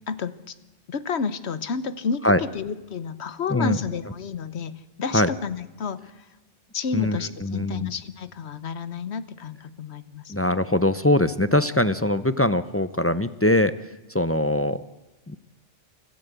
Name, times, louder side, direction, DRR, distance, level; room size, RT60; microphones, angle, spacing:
voice 1, 0.1-0.5 0.9-6.3 6.7-10.3, left 5 dB, 60° left, 14 dB, 1.2 m, -31 dB
voice 2, 6.9-7.9 10.3-13.7 14.1-14.8 15.3-15.4, left 1 dB, 20° left, 12 dB, 0.3 m, -22 dB
24.5 x 14.5 x 8.2 m, 1.1 s
omnidirectional pair, 1.3 m